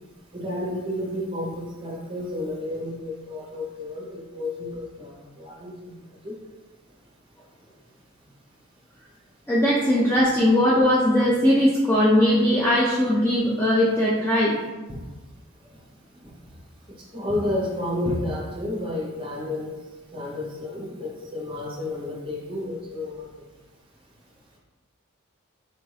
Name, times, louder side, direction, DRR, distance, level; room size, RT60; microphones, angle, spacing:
voice 1, 0.3-5.9 6.2-6.3 17.1-19.7 20.1-23.3, left 1 dB, 25° right, -3 dB, 0.8 m, -31 dB
voice 2, 9.5-14.6, left 1 dB, 10° left, -6 dB, 0.3 m, -19 dB
4.4 x 2.5 x 3.2 m, 1.2 s
head